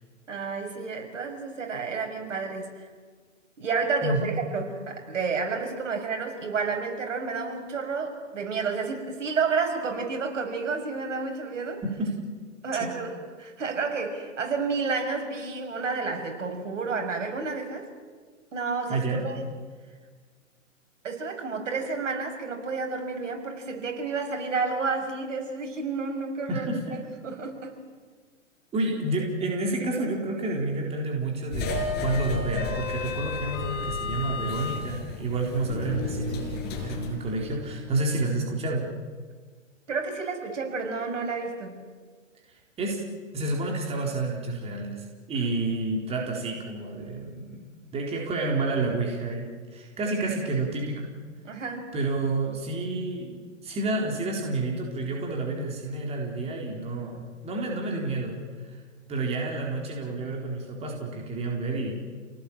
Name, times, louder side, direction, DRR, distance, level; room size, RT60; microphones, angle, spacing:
voice 1, 0.3-2.9 3.6-11.8 12.6-17.9 18.5-19.4 21.0-27.7 38.2-38.4 39.9-41.9 45.4-45.5 51.4-51.9, right 4 dB, 70° right, 4 dB, 6.3 m, -30 dB
voice 2, 11.8-12.1 12.8-12.9 18.9-19.3 26.5-27.0 28.7-38.9 42.8-43.0 43.3-51.1 51.9-58.4 58.7-58.8 59.1-61.9, right 2 dB, 15° right, 0 dB, 4.2 m, -29 dB
sound 1, 31.5-38.0, left 4 dB, 25° left, 5.5 m, -32 dB
29.0 x 18.5 x 8.8 m, 1.6 s
hypercardioid pair, 135°, 39 cm